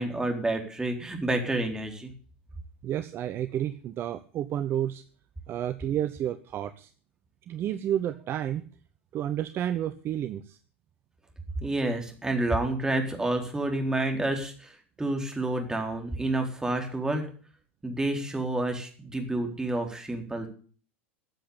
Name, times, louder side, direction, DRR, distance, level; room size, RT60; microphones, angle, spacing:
voice 1, 0.0-2.1 11.6-17.2 17.8-20.5, right 2 dB, 10° right, 3 dB, 4.1 m, -29 dB
voice 2, 2.8-5.0 5.5-6.9 7.5-8.6 9.1-10.6, right 11 dB, 35° right, 12 dB, 0.9 m, -30 dB
14.5 x 7.7 x 8.6 m, 0.42 s
figure-of-eight pair, 90°, 7 cm